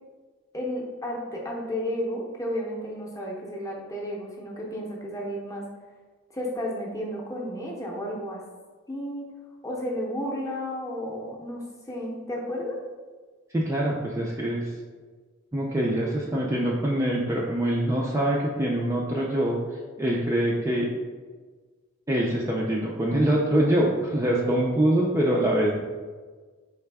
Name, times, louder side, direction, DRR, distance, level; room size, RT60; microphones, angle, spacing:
voice 1, 0.5-5.6 6.3-8.4 8.9-9.2 9.6-12.8, equal, 15° left, -2 dB, 0.7 m, -32 dB
voice 2, 13.5-14.7 15.5-20.9 22.1-25.8, right 1 dB, 15° right, -4 dB, 0.3 m, -24 dB
4.7 x 3.3 x 3.4 m, 1.4 s
head